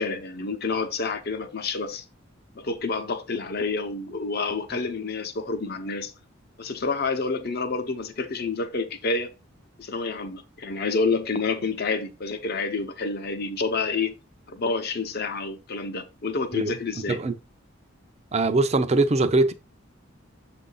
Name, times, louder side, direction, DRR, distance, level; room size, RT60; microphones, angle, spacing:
voice 1, 0.0-2.0 2.5-6.1 6.6-9.3 9.8-14.1 14.5-17.2, left 4 dB, 50° left, 0.8 m, -28 dB
voice 2, 18.3-19.5, right 2 dB, 35° right, 0.6 m, -21 dB
7.2 x 2.6 x 5.4 m
head